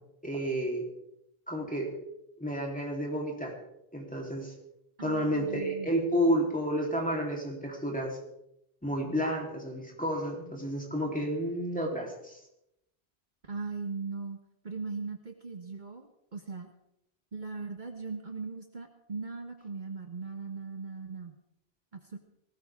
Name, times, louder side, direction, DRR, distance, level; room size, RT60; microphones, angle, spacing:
voice 1, 0.2-0.9 1.5-1.9 2.4-3.6 3.9-4.5 5.0-8.2 8.8-12.4, equal, 5° left, -1 dB, 3.7 m, -31 dB
voice 2, 5.0-5.9 13.4-14.4 14.6-16.7 17.3-21.3 21.9-22.2, right 4 dB, 50° right, 4 dB, 1.4 m, -39 dB
19.5 x 18.0 x 3.7 m, 0.82 s
omnidirectional pair, 1.1 m